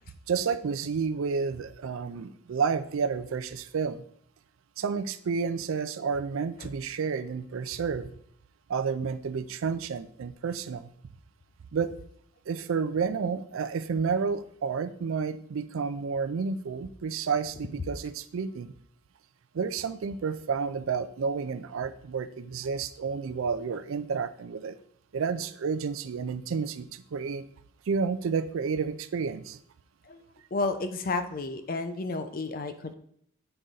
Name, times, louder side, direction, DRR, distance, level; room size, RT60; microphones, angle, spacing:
voice 1, 0.3-4.0 4.8-8.1 8.7-10.9 11.7-11.9 12.5-18.7 19.5-24.8 25.1-27.5 27.9-29.6, right 5 dB, 70° right, 13 dB, 0.4 m, -30 dB
voice 2, 30.5-32.9, left 3 dB, 40° left, 9 dB, 0.5 m, -31 dB
7.8 x 3.8 x 4.0 m, 0.67 s
head